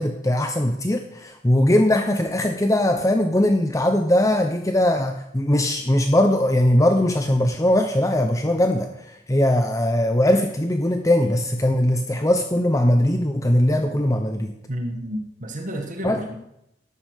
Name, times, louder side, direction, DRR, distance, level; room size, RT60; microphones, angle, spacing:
voice 1, 0.0-8.9 9.3-14.5 16.0-16.2, left 1 dB, 20° left, 5 dB, 0.9 m, -20 dB
voice 2, 14.7-16.4, equal, 45° right, 3 dB, 1.7 m, -30 dB
13.0 x 11.0 x 6.6 m, 0.82 s
head